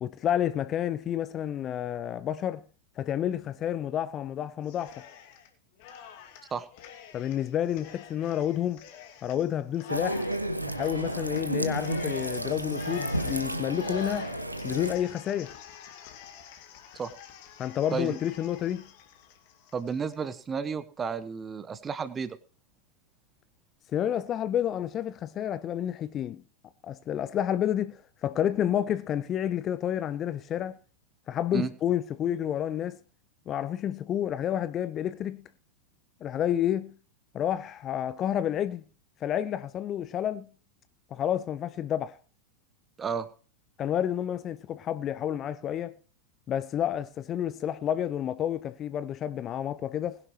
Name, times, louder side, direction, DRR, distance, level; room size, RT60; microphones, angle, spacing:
voice 1, 0.0-2.6 3.0-5.0 7.1-8.8 9.2-10.2 10.7-14.3 14.6-15.5 17.6-18.9 23.9-26.4 26.8-30.8 31.3-33.0 33.5-35.5 36.2-36.9 37.3-38.8 39.2-40.5 41.1-42.2 43.8-45.9 46.5-50.2, left 10 dB, 30° left, 0.6 m, -30 dB
Cheering, 4.6-5.5 5.8-20.2, left 9 dB, 45° left, 2.4 m, -48 dB
sound 1, 9.9-14.9, right 1 dB, 85° right, 1.3 m, -32 dB
voice 2, 19.7-22.4 31.5-31.7 43.0-43.3, right 6 dB, 20° right, 1.1 m, -32 dB
20.5 x 11.0 x 3.2 m
figure-of-eight pair, 90°, 0 cm